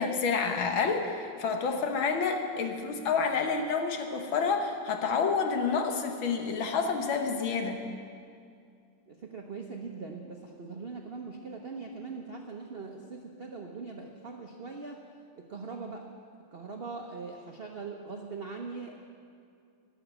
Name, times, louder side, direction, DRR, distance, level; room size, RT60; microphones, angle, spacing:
voice 1, 0.0-7.8, left 5 dB, 70° left, 4 dB, 1.8 m, -29 dB
voice 2, 9.1-15.0 15.4-16.1 16.5-19.1, right 4 dB, 90° right, 2 dB, 0.5 m, -41 dB
13.0 x 6.5 x 10.0 m, 2.3 s
omnidirectional pair, 2.3 m